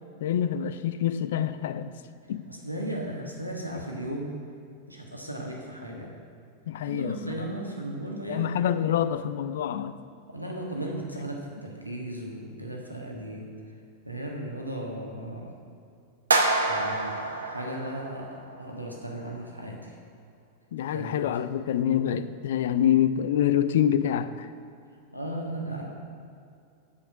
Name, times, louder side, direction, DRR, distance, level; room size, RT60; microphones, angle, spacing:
voice 1, 0.2-1.9 2.3-2.5 6.7-7.5 8.3-9.9 20.7-24.5, left 10 dB, 60° left, 0.4 m, -26 dB
voice 2, 2.5-4.3 4.9-6.2 6.8-8.5 10.3-13.5 14.0-15.5 16.7-18.3 18.6-20.0 20.9-21.3 24.9-25.9, right 1 dB, 90° right, 1.3 m, -36 dB
sound 1, 16.3-18.5, right 2 dB, 75° right, 0.8 m, -27 dB
7.0 x 5.4 x 7.2 m
figure-of-eight pair, 90°, 0 cm